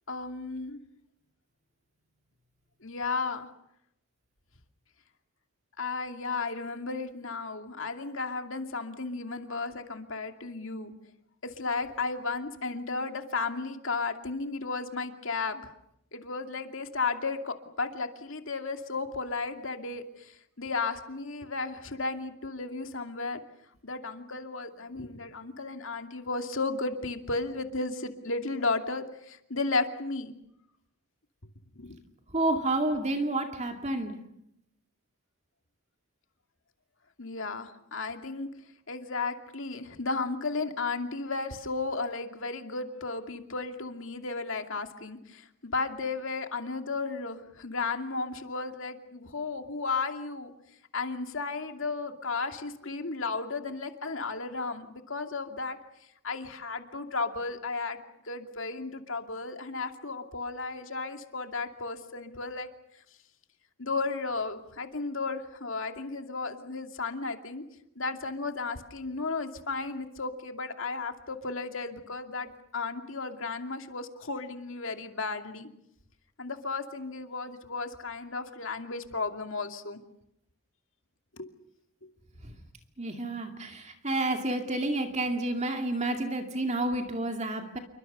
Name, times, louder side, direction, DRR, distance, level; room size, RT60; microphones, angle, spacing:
voice 1, 0.1-0.8 2.8-3.5 5.8-10.9 11.4-15.6 16.1-23.4 23.8-30.3 31.8-32.0 37.2-38.5 38.9-45.5 45.7-50.5 50.9-55.8 56.2-58.0 58.2-62.7 63.8-67.6 68.0-75.7 76.4-80.0 81.4-81.5, left 3 dB, 65° left, 6 dB, 2.6 m, -34 dB
voice 2, 32.3-34.2 82.4-82.5 83.0-87.8, right 2 dB, 30° right, 5 dB, 2.4 m, -30 dB
28.5 x 24.0 x 6.8 m, 0.77 s
head